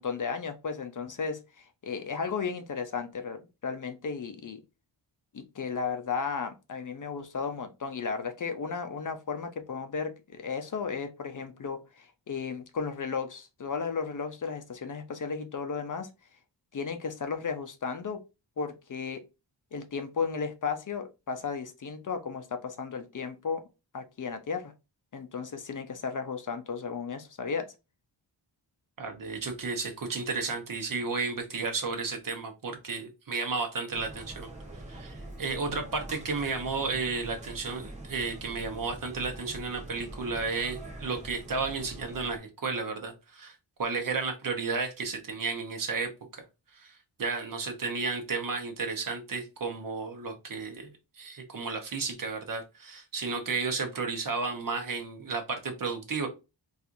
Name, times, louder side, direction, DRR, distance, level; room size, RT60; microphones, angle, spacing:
voice 1, 0.0-4.6 5.3-16.1 16.7-18.2 18.6-19.2 19.7-23.6 23.9-24.7 25.1-27.7, left 5 dB, 45° left, 7 dB, 0.5 m, -34 dB
voice 2, 29.0-34.5 34.9-46.4 46.7-46.9 47.2-50.9 51.2-56.3, right 4 dB, 50° right, 4 dB, 0.8 m, -33 dB
sound 1, 33.9-42.4, right 1 dB, 15° right, 0.9 m, -44 dB
4.2 x 2.4 x 2.5 m, 0.26 s
wide cardioid pair, 150°, 44 cm